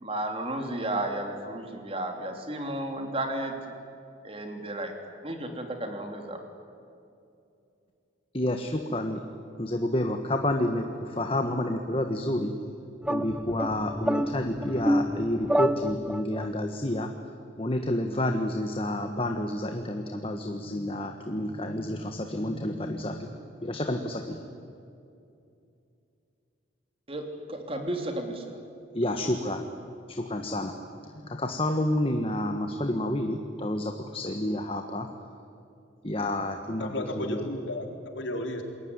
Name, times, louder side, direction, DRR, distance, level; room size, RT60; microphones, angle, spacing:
voice 1, 0.0-3.5 4.2-4.9 5.2-6.4 27.1-28.4, right 1 dB, 30° right, 4 dB, 3.2 m, -33 dB
voice 2, 8.3-9.2 9.6-12.5 13.1-17.1 17.6-24.5 28.9-29.7 30.1-30.8 31.0-35.1 36.0-37.4, left 1 dB, 30° left, 5 dB, 1.4 m, -29 dB
sound 1, 13.0-16.5, equal, 5° right, 0.6 m, -28 dB
voice 3, 36.8-38.6, left 1 dB, 75° left, 3 dB, 4.2 m, -33 dB
28.0 x 21.5 x 9.8 m, 2.6 s
head